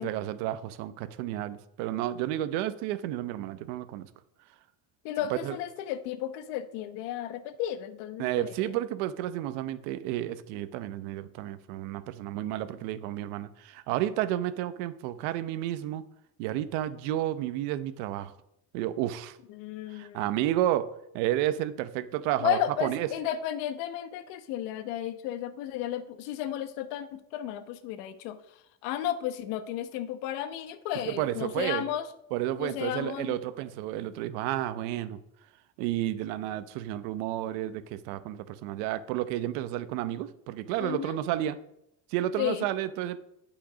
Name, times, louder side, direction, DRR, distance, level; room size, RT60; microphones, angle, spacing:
voice 1, 0.0-4.1 5.3-5.6 8.2-16.0 16.4-18.3 18.7-19.4 19.9-20.9 21.1-23.1 31.1-31.8 32.3-35.2 35.8-41.6 42.1-43.2, right 13 dB, 90° right, 13 dB, 0.9 m, -31 dB
voice 2, 5.0-8.7 19.5-20.4 22.4-28.4 28.8-32.1 32.6-33.4 40.8-41.2 42.4-42.7, left 11 dB, 85° left, 11 dB, 1.1 m, -33 dB
8.9 x 8.6 x 5.1 m, 0.79 s
cardioid pair, 135°, 41 cm